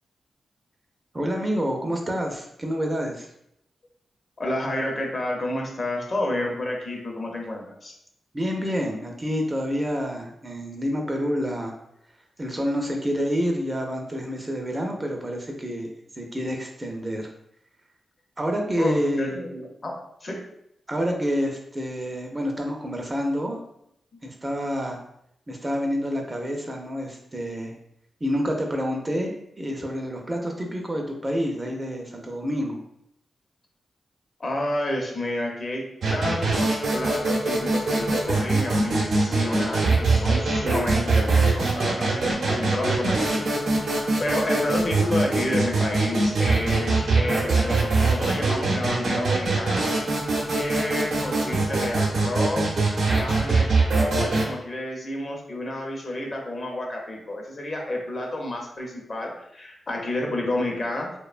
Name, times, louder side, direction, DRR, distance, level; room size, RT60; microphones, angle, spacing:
voice 1, 1.1-3.3 8.3-11.7 12.4-15.9 16.2-17.3 18.4-19.3 20.9-23.6 24.2-25.0 25.5-27.7 28.2-32.8, equal, 25° right, 1 dB, 0.4 m, -28 dB
voice 2, 4.4-7.9 18.8-19.9 20.2-20.4 34.4-49.9 50.5-52.7 53.2-61.2, left 1 dB, 40° left, 0 dB, 0.6 m, -30 dB
sound 1, 36.0-54.4, right 3 dB, 80° right, 0.6 m, -23 dB
2.7 x 2.1 x 2.4 m, 0.75 s
cardioid pair, 85°, 0 cm